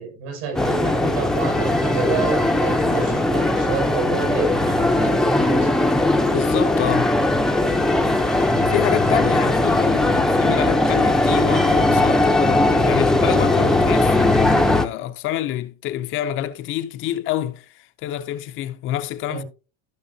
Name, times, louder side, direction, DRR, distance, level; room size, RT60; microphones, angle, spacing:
voice 1, 0.0-5.9 19.3-19.5, right 5 dB, 75° right, 6.1 m, -29 dB
sound 1, 0.5-14.9, left 2 dB, ahead, 0.7 m, -19 dB
voice 2, 6.2-7.2 8.6-19.4, left 12 dB, 40° left, 0.7 m, -27 dB
15.0 x 5.6 x 2.7 m
supercardioid pair, 140°, 31 cm